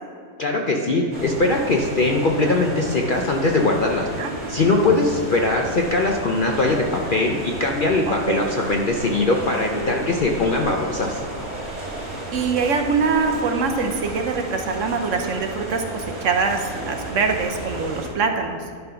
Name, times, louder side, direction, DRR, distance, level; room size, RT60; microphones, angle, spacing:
voice 1, 0.4-4.1 4.5-11.2, left 2 dB, 55° left, 1 dB, 0.6 m, -21 dB
sound 1, 1.1-18.1, right 1 dB, 80° right, 2.6 m, -33 dB
voice 2, 8.1-8.4 12.3-18.6, right 4 dB, 65° right, 5 dB, 1.0 m, -23 dB
11.5 x 3.9 x 5.7 m, 2.2 s
omnidirectional pair, 1.5 m